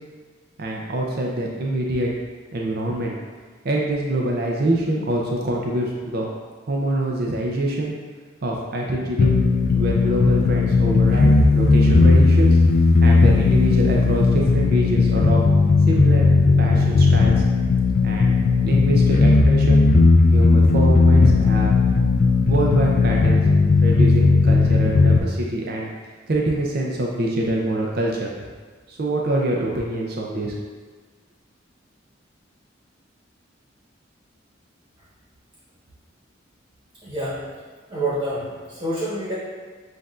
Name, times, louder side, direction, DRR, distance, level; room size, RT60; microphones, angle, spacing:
voice 1, 0.6-2.1 2.5-3.2 3.6-6.3 6.7-7.9 8.4-9.3 9.8-12.6 13.0-15.4 15.9-16.3 16.6-17.4 18.0-18.3 18.6-19.9 20.3-21.7 22.5-23.4 23.8-25.9 26.3-28.3 28.9-30.5, right 1 dB, 55° right, -2 dB, 0.5 m, -25 dB
sound 1, 9.2-25.2, left 3 dB, 50° left, 0.3 m, -16 dB
voice 2, 37.0-37.4 37.9-39.3, right 1 dB, 25° right, -9 dB, 1.1 m, -27 dB
7.5 x 2.6 x 2.4 m, 1.4 s
head